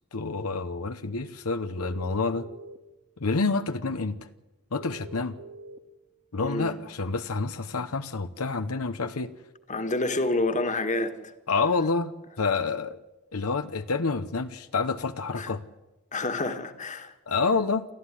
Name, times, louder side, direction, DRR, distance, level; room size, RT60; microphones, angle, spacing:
voice 1, 0.1-2.5 3.2-4.2 4.7-5.4 6.3-9.3 11.5-12.1 12.4-13.0 13.3-15.6 17.3-17.9, left 4 dB, 85° left, 1.0 m, -28 dB
sound 1, 1.8-2.8 4.8-5.8, right 3 dB, 90° right, 2.0 m, -44 dB
voice 2, 6.4-6.8 9.7-11.1 15.4-15.5 16.1-17.1, left 2 dB, 35° left, 1.8 m, -28 dB
29.0 x 13.5 x 9.9 m
head